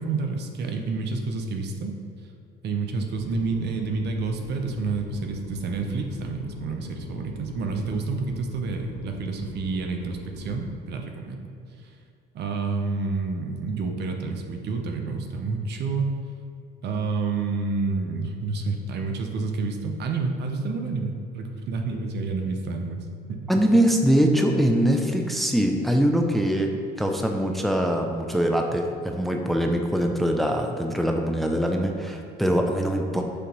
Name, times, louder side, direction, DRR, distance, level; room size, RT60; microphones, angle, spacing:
voice 1, 0.0-2.0 2.6-11.5 11.8-12.0 12.3-16.1 16.8-23.5 33.1-33.2, right 4 dB, 60° right, 4 dB, 0.8 m, -29 dB
sound 1, 3.1-10.7, left 4 dB, 85° left, 0.8 m, -42 dB
voice 2, 23.5-26.7 27.0-33.2, equal, ahead, 3 dB, 0.6 m, -23 dB
6.7 x 2.9 x 5.4 m, 2.5 s
supercardioid pair, 80°, 19 cm